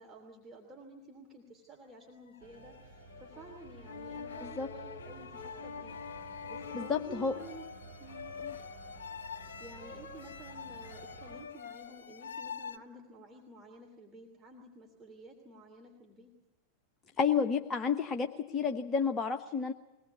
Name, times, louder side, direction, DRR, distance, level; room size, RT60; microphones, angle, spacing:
voice 1, 0.0-7.7 8.0-8.3 9.6-16.3, right 1 dB, 20° right, 1 dB, 3.0 m, -52 dB
sound 1, 2.3-12.8, left 6 dB, 60° left, 1.4 m, -45 dB
sound 2, 2.4-11.4, right 3 dB, 80° right, 3.2 m, -52 dB
voice 2, 6.7-7.4 8.4-8.5 17.2-19.7, left 6 dB, 20° left, 6 dB, 1.1 m, -31 dB
22.5 x 18.5 x 8.2 m, 1.1 s
figure-of-eight pair, 90°, 0 cm